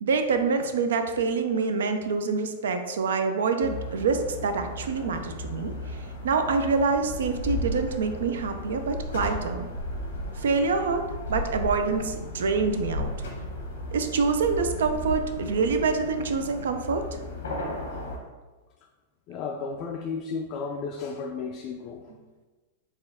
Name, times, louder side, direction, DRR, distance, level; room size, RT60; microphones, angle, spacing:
voice 1, 0.0-5.7 6.2-9.7 10.4-11.0 11.3-13.1 13.9-17.0, right 4 dB, 80° right, 7 dB, 0.4 m, -26 dB
sound 1, 3.6-18.2, left 1 dB, 90° left, 0.9 m, -35 dB
voice 2, 19.3-22.1, left 5 dB, 45° left, 2 dB, 0.3 m, -33 dB
4.2 x 2.4 x 3.5 m, 1.3 s
hypercardioid pair, 120°, 0 cm